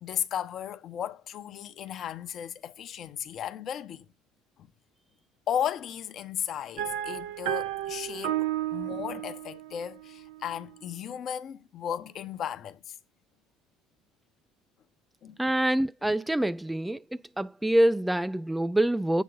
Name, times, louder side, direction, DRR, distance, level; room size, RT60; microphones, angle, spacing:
voice 1, 0.0-4.1 5.5-12.9 15.2-15.4, left 9 dB, 50° left, 0.9 m, -35 dB
sound 1, 6.8-10.6, right 12 dB, 65° right, 0.8 m, -33 dB
voice 2, 15.4-17.0 17.4-19.2, right 1 dB, 5° right, 0.3 m, -25 dB
8.3 x 3.6 x 5.1 m
figure-of-eight pair, 60°, 0 cm